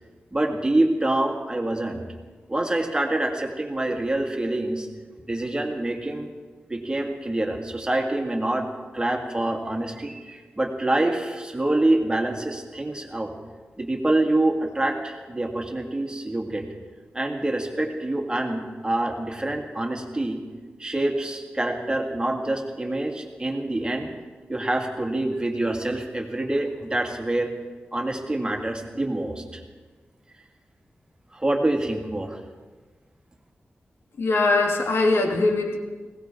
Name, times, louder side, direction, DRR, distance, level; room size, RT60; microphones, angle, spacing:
voice 1, 0.3-2.0 2.5-4.9 5.2-6.3 6.7-8.7 8.9-13.3 13.8-16.6 17.1-20.4 20.8-24.1 24.5-27.5 27.9-29.6 31.3-32.4, right 1 dB, 20° right, 2 dB, 2.0 m, -26 dB
voice 2, 34.2-35.8, left 3 dB, 90° left, 4 dB, 1.5 m, -21 dB
20.0 x 17.5 x 3.8 m, 1.4 s
wide cardioid pair, 85°, 4 cm